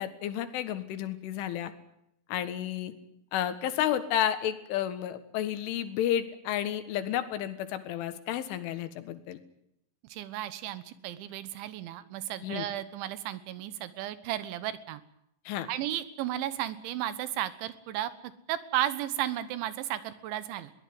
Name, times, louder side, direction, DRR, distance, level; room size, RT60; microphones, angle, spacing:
voice 1, 0.0-1.7 2.3-2.9 3.3-9.4 12.4-12.7 15.5-15.7, left 11 dB, 85° left, 10 dB, 4.0 m, -31 dB
voice 2, 10.1-15.0 15.7-20.7, right 13 dB, 80° right, 14 dB, 3.4 m, -34 dB
22.5 x 18.0 x 9.6 m, 0.79 s
omnidirectional pair, 5.5 m